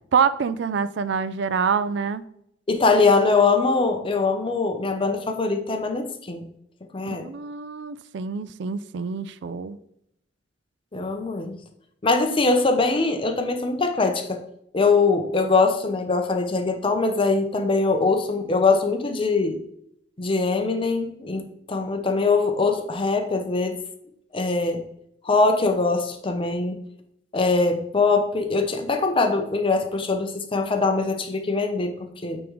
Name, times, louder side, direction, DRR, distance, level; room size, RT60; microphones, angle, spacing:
voice 1, 0.1-2.3 7.1-9.8, right 6 dB, 65° right, 15 dB, 0.4 m, -26 dB
voice 2, 2.7-6.4 6.9-7.3 10.9-11.6 12.0-14.4 14.7-19.6 20.2-23.8 24.3-24.8 25.2-26.8 27.3-31.9 32.2-32.4, left 3 dB, 30° left, 5 dB, 0.6 m, -22 dB
8.3 x 3.6 x 3.1 m, 0.74 s
head